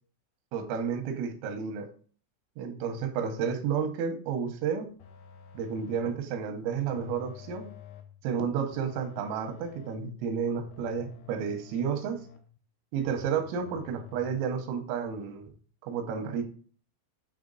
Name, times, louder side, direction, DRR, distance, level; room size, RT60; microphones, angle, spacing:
voice 1, 0.5-1.9 2.6-4.9 5.5-7.7 8.2-12.2 12.9-15.5 15.8-16.4, right 7 dB, 85° right, 6 dB, 3.6 m, -31 dB
sound 1, 5.0-6.3 6.9-8.2 8.7-10.2 10.7-12.6 13.0-14.4, left 8 dB, 90° left, 2.3 m, -50 dB
9.2 x 3.4 x 3.9 m, 0.44 s
omnidirectional pair, 5.8 m